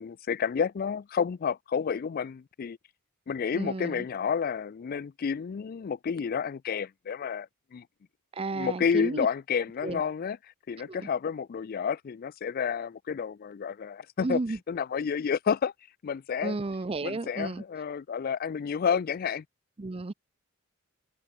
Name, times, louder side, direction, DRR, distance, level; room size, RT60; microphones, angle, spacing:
voice 1, 0.0-2.8 3.3-7.8 8.5-10.4 10.7-14.4 14.7-15.7 16.0-16.6 17.0-19.4, left 6 dB, 45° left, 0.3 m, -30 dB
voice 2, 3.5-4.0 8.3-9.3 9.8-10.0 10.8-11.1 14.2-14.6 16.4-17.6 19.8-20.1, right 3 dB, 25° right, 0.5 m, -33 dB
head